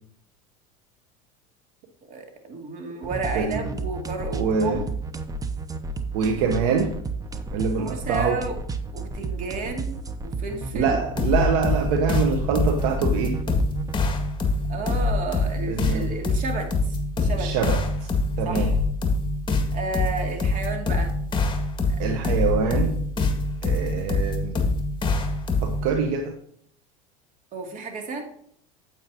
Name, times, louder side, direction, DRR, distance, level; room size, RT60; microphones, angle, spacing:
voice 1, 2.1-4.9 7.6-8.6 8.9-11.0 14.7-17.5 18.4-18.7 19.7-21.1 27.5-28.2, right 3 dB, 45° right, 3 dB, 2.5 m, -32 dB
sound 1, 3.0-13.9, right 3 dB, 20° right, 0.9 m, -32 dB
voice 2, 3.3-3.7 4.3-4.8 6.1-6.9 7.5-8.4 10.7-13.4 15.7-16.0 17.4-18.1 18.4-18.7 22.0-23.0 23.6-24.5 25.6-26.3, right 5 dB, 75° right, 5 dB, 1.1 m, -25 dB
sound 2, 11.2-25.9, left 3 dB, 25° left, 1.8 m, -25 dB
9.2 x 8.3 x 2.8 m, 0.66 s
supercardioid pair, 90°, 19 cm